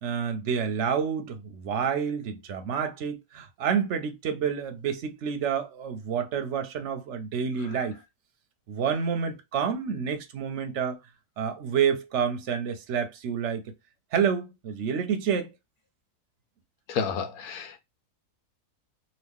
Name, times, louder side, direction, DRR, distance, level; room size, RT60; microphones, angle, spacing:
voice 1, 0.0-8.0 8.7-11.0 11.4-13.6 14.1-15.5, right 7 dB, 60° right, 0.9 m, -28 dB
voice 2, 16.9-17.8, left 6 dB, 80° left, 1.2 m, -31 dB
2.9 x 2.7 x 3.5 m
omnidirectional pair, 1.6 m